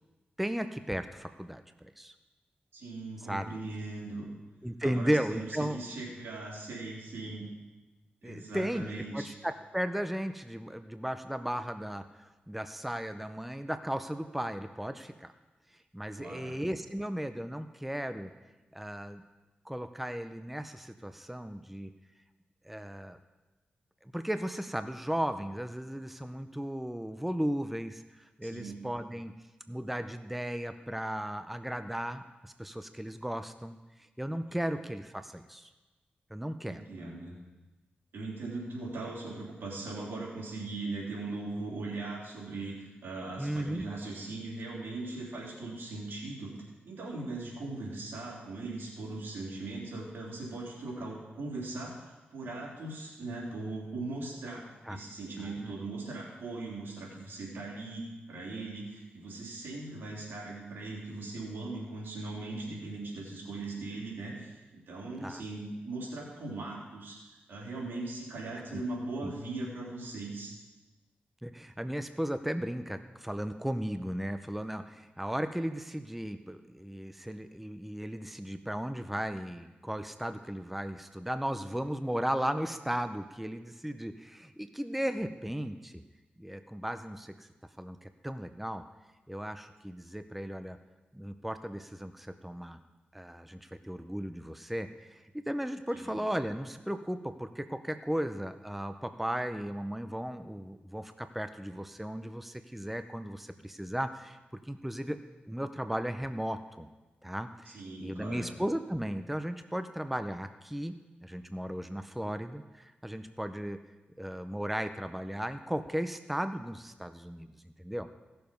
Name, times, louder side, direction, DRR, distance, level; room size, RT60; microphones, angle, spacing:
voice 1, 0.4-2.1 3.3-3.5 4.6-5.8 8.2-15.3 15.7-18.3 18.7-19.2 19.6-21.9 22.6-23.2 24.0-29.3 29.7-33.8 34.2-35.7 36.3-36.8 43.4-43.9 54.9-55.0 55.4-55.7 65.2-65.4 68.7-68.8 69.2-69.3 71.4-86.0 86.4-87.5 87.8-88.8 89.3-90.8 91.1-92.8 93.1-104.4 104.7-105.2 105.5-106.9 107.2-110.9 111.2-113.8 114.2-117.5 117.8-118.1, equal, 5° right, 9 dB, 0.6 m, -36 dB
voice 2, 2.7-4.3 4.8-7.5 8.2-9.3 16.2-16.6 28.4-28.8 34.5-34.6 36.6-37.4 38.1-46.5 46.9-70.5 95.9-96.2 107.7-108.5, right 2 dB, 85° right, -4 dB, 3.5 m, -39 dB
16.5 x 6.9 x 5.3 m, 1.1 s
cardioid pair, 75°, 4 cm